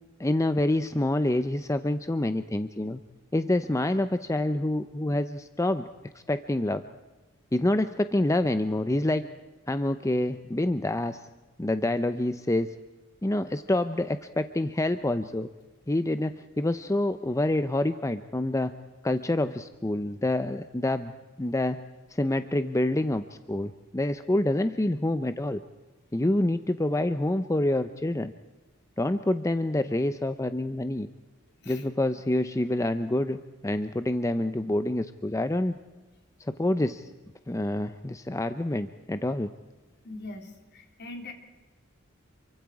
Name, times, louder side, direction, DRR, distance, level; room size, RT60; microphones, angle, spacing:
voice 1, 0.2-3.0 3.3-5.9 6.1-6.8 7.5-9.3 9.7-11.2 11.6-12.8 13.2-15.5 15.9-18.7 19.0-21.1 21.4-21.8 22.1-25.6 26.1-28.3 29.0-31.1 31.7-33.4 33.6-35.8 36.6-37.1 37.5-39.5, left 1 dB, 15° left, 10 dB, 0.6 m, -27 dB
voice 2, 40.0-41.3, left 2 dB, 55° left, 3 dB, 3.8 m, -41 dB
28.0 x 24.0 x 4.9 m, 1.2 s
head